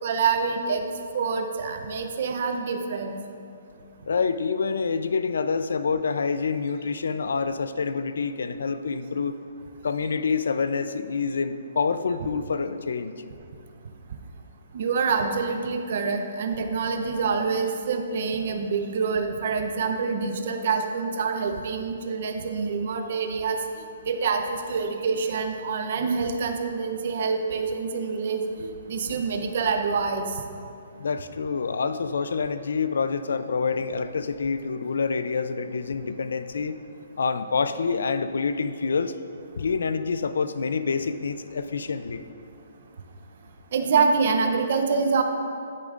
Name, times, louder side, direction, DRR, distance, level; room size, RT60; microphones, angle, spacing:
voice 1, 0.0-0.9 1.1-3.2 14.7-23.6 24.1-30.4 43.7-45.2, right 5 dB, 45° right, 5 dB, 0.6 m, -26 dB
voice 2, 4.0-9.4 9.8-13.2 31.0-36.8 37.2-39.1 39.6-42.2, left 5 dB, 80° left, 11 dB, 0.4 m, -27 dB
9.9 x 8.6 x 2.5 m, 2.5 s
hypercardioid pair, 175°, 0 cm